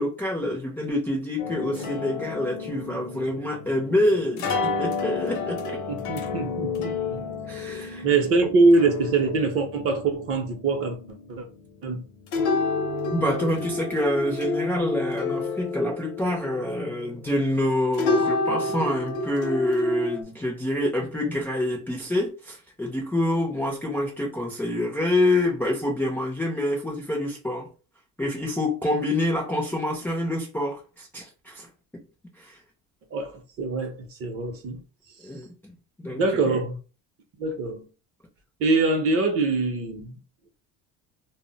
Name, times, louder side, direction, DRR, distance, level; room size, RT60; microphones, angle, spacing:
voice 1, 0.0-5.8 7.5-8.1 13.1-27.7 28.2-31.7 32.4-32.6 35.2-36.6, left 1 dB, 5° left, 0.4 m, -27 dB
sound 1, 1.4-17.6 17.9-20.2, left 3 dB, 55° left, 0.6 m, -30 dB
voice 2, 5.9-7.2 8.0-11.0 11.3-11.5 11.8-12.0 33.1-34.8 36.1-36.8 37.4-37.8 38.6-40.2, right 3 dB, 40° right, 0.6 m, -23 dB
2.0 x 2.0 x 3.7 m
cardioid pair, 150°, 36 cm